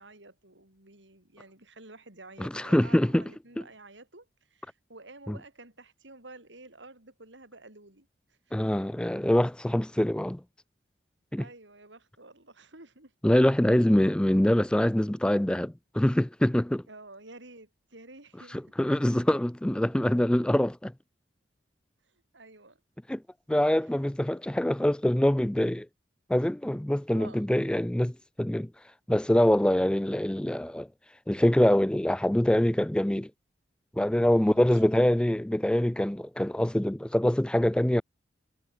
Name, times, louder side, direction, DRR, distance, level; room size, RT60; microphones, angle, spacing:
voice 1, 0.0-8.5 11.4-13.1 16.9-18.6 22.1-22.8 23.8-24.0 24.3-24.4 27.1-27.4 34.3-34.8, right 2 dB, 80° right, 6.4 m, -51 dB
voice 2, 2.4-3.2 3.6-3.7 5.3-5.4 8.5-10.4 11.3-11.4 13.2-16.8 18.8-20.9 23.1-23.2 23.5-25.9 26.3-28.7 29.1-30.9 31.3-33.3 34.0-38.0, left 1 dB, 5° left, 0.3 m, -24 dB
head